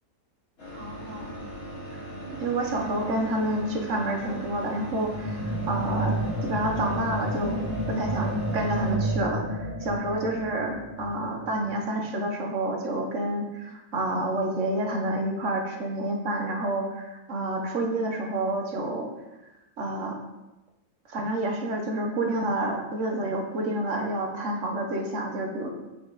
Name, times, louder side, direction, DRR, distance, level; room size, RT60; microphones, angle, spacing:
sound 1, 0.6-9.0, right 1 dB, 65° left, 3.4 m, -39 dB
voice 1, 0.7-1.3 2.4-7.6 7.9-19.1 19.8-20.2 21.1-25.7, right 1 dB, 55° right, 2 dB, 1.4 m, -29 dB
sound 2, 5.1-11.8, right 1 dB, 15° right, 1.0 m, -31 dB
8.2 x 5.6 x 4.0 m, 0.99 s
omnidirectional pair, 1.6 m